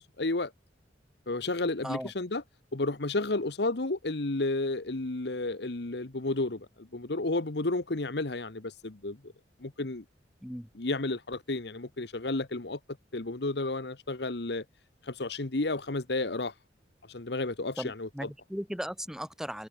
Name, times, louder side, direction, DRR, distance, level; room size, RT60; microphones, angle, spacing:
voice 1, 0.2-0.5 1.3-2.4 2.7-9.2 9.6-10.0 10.7-12.8 13.1-14.6 15.1-16.5 17.1-18.1, left 2 dB, 65° left, 1.3 m, -32 dB
voice 2, 17.8-19.7, equal, 5° right, 3.4 m, -37 dB
head